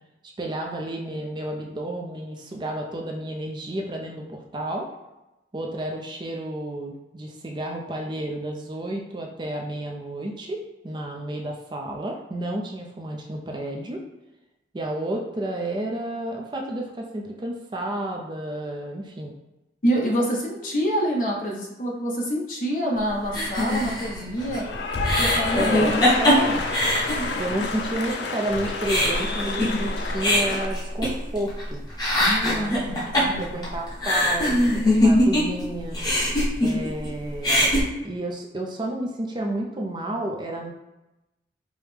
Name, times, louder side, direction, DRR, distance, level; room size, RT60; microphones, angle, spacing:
voice 1, 0.4-4.9 5.5-14.0 14.7-19.3 25.6-25.9 27.4-31.8 32.4-36.0 36.6-40.7, right 1 dB, 25° right, 1 dB, 0.4 m, -31 dB
voice 2, 19.8-24.7 25.2-26.6 32.2-33.6, equal, 50° left, -2 dB, 0.8 m, -27 dB
sound 1, 23.3-27.7 28.1-28.2 28.5-31.6 31.9-35.6 35.9-37.1 37.3-37.8, left 1 dB, 25° left, 0.9 m, -22 dB
Cheering / Applause, 24.4-30.7, left 3 dB, 80° left, 0.5 m, -29 dB
4.7 x 2.1 x 3.3 m, 0.97 s
head